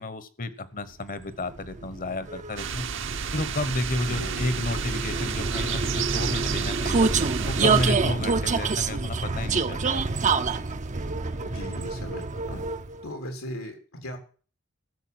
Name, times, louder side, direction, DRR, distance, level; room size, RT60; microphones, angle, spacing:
voice 1, 0.0-2.9 3.3-7.1 7.5-10.0 10.3-10.4, left 2 dB, 40° left, 14 dB, 1.2 m, -32 dB
Vehicle, 1.2-13.1, right 4 dB, 35° right, 0.7 m, -27 dB
sound 1, 2.6-7.9, right 7 dB, 60° right, 1.0 m, -32 dB
voice 2, 4.1-4.6 11.4-12.6 13.0-14.2, left 1 dB, 90° left, 4 dB, 3.5 m, -38 dB
14.5 x 6.7 x 7.8 m, 0.40 s
head